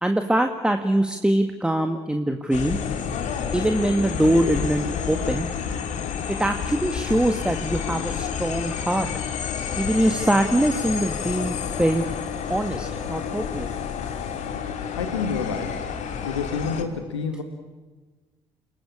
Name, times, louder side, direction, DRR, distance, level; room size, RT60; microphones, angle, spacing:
voice 1, 0.0-2.8 3.5-5.5 6.3-9.1 9.8-12.1 12.5-13.7, right 1 dB, 5° right, 6 dB, 1.8 m, -23 dB
sound 1, 2.5-16.8, left 7 dB, 55° left, 2.4 m, -30 dB
voice 2, 14.9-15.9 16.2-17.4, left 5 dB, 80° left, 6 dB, 1.7 m, -28 dB
29.5 x 19.5 x 8.7 m, 1.3 s
figure-of-eight pair, 45°, 15 cm